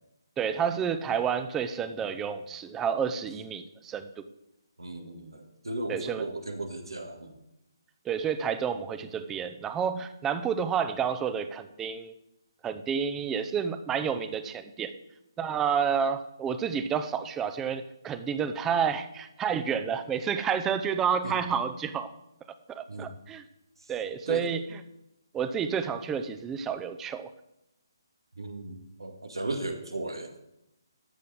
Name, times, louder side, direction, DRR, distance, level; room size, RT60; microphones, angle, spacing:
voice 1, 0.4-4.1 5.9-6.2 8.0-12.1 12.6-14.9 15.4-22.1 22.7-23.4 23.9-24.6 25.3-27.3, right 7 dB, 10° right, 11 dB, 0.7 m, -30 dB
voice 2, 4.8-7.3 21.2-21.3 22.9-23.1 24.3-24.5 28.4-30.3, right 2 dB, 90° right, 5 dB, 2.1 m, -36 dB
13.0 x 5.6 x 7.9 m, 0.85 s
figure-of-eight pair, 150°, 2 cm